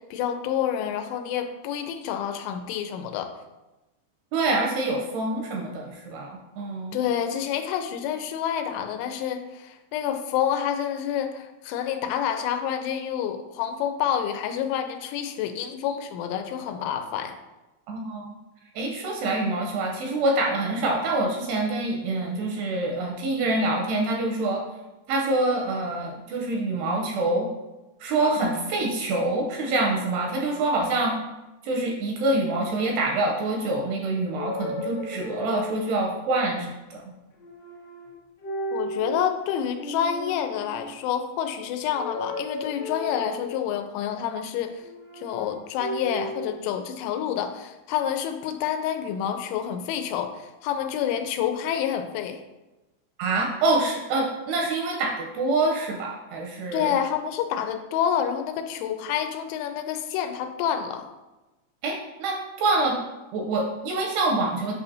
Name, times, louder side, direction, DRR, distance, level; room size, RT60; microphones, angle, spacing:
voice 1, 0.1-3.3 6.9-17.4 38.7-44.8 45.1-52.4 56.7-61.1, left 9 dB, 90° left, 6 dB, 3.0 m, -28 dB
voice 2, 4.3-7.0 17.9-18.3 18.8-24.6 25.1-27.5 28.0-31.2 31.6-37.0 53.2-57.0 61.8-63.0 63.3-64.7, right 2 dB, 80° right, 1 dB, 2.5 m, -26 dB
sound 1, 34.3-36.1 37.4-38.1 38.4-39.3 39.7-40.9 41.9-43.7 44.8-46.5, equal, 65° left, 1.5 m, -35 dB
8.5 x 5.6 x 2.7 m, 1.1 s
omnidirectional pair, 5.3 m